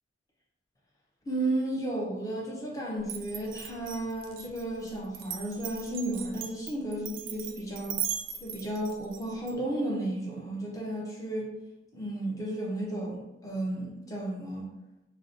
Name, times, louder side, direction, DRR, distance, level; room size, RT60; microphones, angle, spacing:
voice 1, 1.3-8.0 8.4-11.5 11.9-14.7, right 1 dB, 20° left, -3 dB, 0.5 m, -33 dB
Glass, 3.0-9.5, right 9 dB, 85° right, 0.3 m, -38 dB
2.6 x 2.0 x 2.6 m, 0.96 s
head